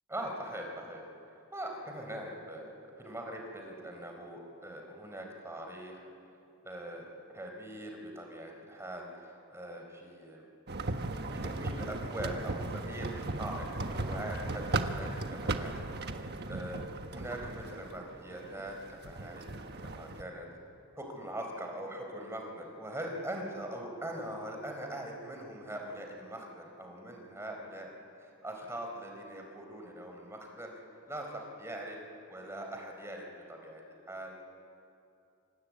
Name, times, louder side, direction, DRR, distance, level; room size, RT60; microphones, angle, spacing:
voice 1, 0.1-1.0 1.3-6.0 6.6-10.5 11.3-20.5 21.0-27.9 28.2-30.7 31.1-32.0 32.3-34.4, right 1 dB, 10° right, 2 dB, 4.2 m, -42 dB
sound 1, 10.7-20.2, right 2 dB, 50° right, 1.4 m, -37 dB
27.0 x 25.5 x 8.6 m, 2.6 s
head